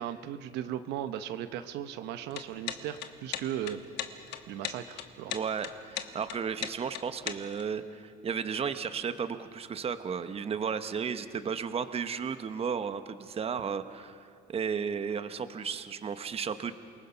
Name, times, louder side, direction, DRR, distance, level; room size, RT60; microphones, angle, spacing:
voice 1, 0.0-3.8 4.5-5.4, right 11 dB, 85° right, 10 dB, 0.9 m, -37 dB
sound 1, 2.2-7.6, left 12 dB, 85° left, 1.3 m, -37 dB
voice 2, 5.3-16.7, right 6 dB, 35° right, 11 dB, 1.0 m, -34 dB
28.0 x 19.5 x 5.7 m, 2.2 s
cardioid pair, 110°, 17 cm